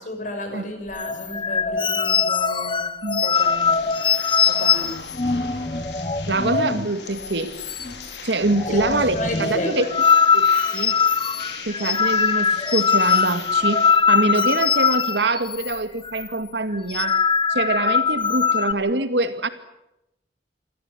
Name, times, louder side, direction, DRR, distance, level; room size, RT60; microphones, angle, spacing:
voice 1, 0.0-2.8 3.2-4.0 4.4-5.7 8.5-9.9, left 1 dB, 45° left, 5 dB, 6.2 m, -33 dB
sound 1, 0.9-6.9 7.2-7.3 7.6-8.2 8.4-15.8 16.0-16.3 16.7-18.7, left 6 dB, 30° left, 0.8 m, -21 dB
sound 2, 3.3-13.9, left 5 dB, 75° left, 3.7 m, -40 dB
voice 2, 6.3-7.5 8.2-9.9 10.3-10.5 10.7-10.9 11.7-17.2 17.5-19.5, right 2 dB, 75° right, 10 dB, 2.0 m, -24 dB
26.5 x 14.5 x 9.7 m, 0.88 s
head